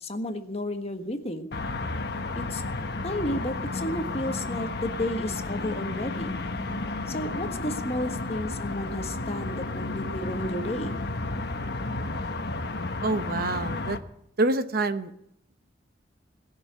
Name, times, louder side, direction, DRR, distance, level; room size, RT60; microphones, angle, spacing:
voice 1, 0.0-1.5 2.3-2.6 3.0-6.3 7.1-11.0, left 1 dB, 30° left, 6 dB, 1.4 m, -32 dB
sound 1, 1.5-14.0, left 2 dB, 55° left, 1.2 m, -32 dB
voice 2, 13.0-14.0 14.4-15.1, right 2 dB, 50° right, 10 dB, 0.9 m, -26 dB
20.0 x 6.9 x 9.8 m, 0.76 s
head